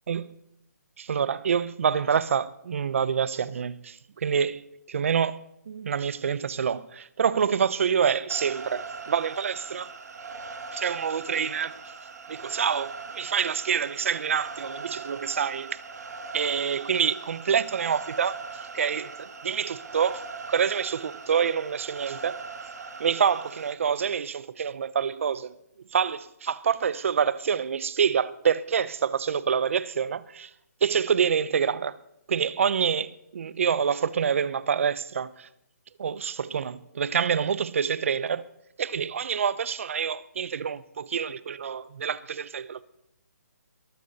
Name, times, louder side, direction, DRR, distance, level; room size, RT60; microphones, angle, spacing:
voice 1, 1.0-4.6 4.9-5.4 5.7-9.9 10.7-11.8 12.3-15.8 16.3-20.2 20.5-22.4 23.0-25.5 25.9-30.5 30.8-32.0 32.3-35.5 36.0-38.4 38.8-42.8, right 7 dB, 50° right, 0.7 m, -27 dB
sound 1, 8.3-23.7, right 4 dB, 70° right, 2.0 m, -40 dB
22.0 x 15.0 x 4.1 m
hypercardioid pair, 165°, 9 cm